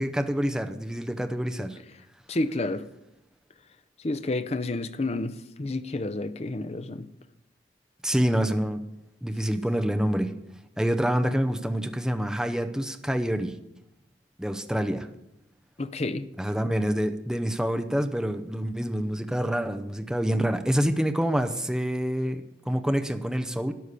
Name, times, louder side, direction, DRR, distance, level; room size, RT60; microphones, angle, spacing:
voice 1, 0.0-1.8 8.0-8.8 9.2-10.3 10.8-13.5 14.4-15.1 16.4-23.7, equal, 5° right, 0.6 m, -27 dB
voice 2, 2.3-2.9 4.0-7.0 15.8-16.3, left 2 dB, 35° left, 0.6 m, -30 dB
12.5 x 9.9 x 6.7 m
head